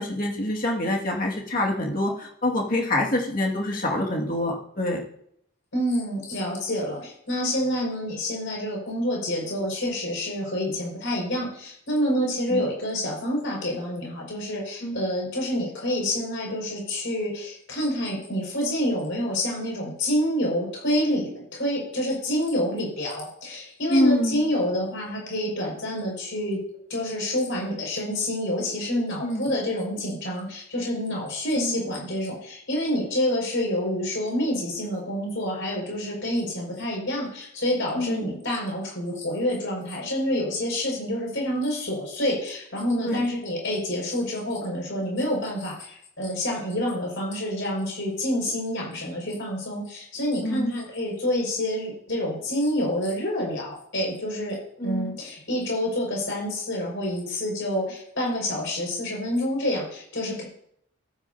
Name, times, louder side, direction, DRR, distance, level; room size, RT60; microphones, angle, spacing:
voice 1, 0.0-5.0 12.5-12.6 14.8-15.0 23.9-24.4 29.2-29.5 31.6-31.9 38.0-38.3 43.0-43.2 50.4-50.8 54.8-55.1, left 1 dB, 40° left, -1 dB, 2.3 m, -26 dB
voice 2, 5.7-26.6 26.9-54.6 54.8-60.4, left 1 dB, 60° left, -2 dB, 5.9 m, -28 dB
14.5 x 12.0 x 2.9 m, 0.70 s
head